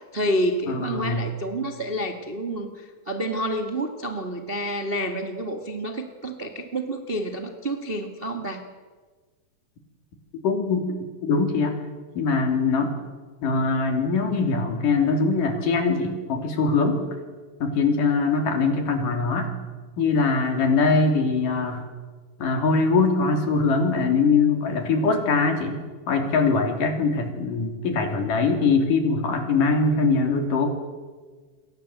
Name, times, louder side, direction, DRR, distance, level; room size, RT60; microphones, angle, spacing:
voice 1, 0.0-8.7, right 1 dB, 25° right, 5 dB, 1.4 m, -29 dB
voice 2, 0.7-1.2 10.4-10.9 11.2-11.8 12.2-12.9 13.4-17.0 17.6-19.5 20.0-21.9 22.4-25.8 26.1-30.7, left 4 dB, 65° left, 5 dB, 4.9 m, -22 dB
28.5 x 23.0 x 8.1 m, 1.4 s
omnidirectional pair, 4.1 m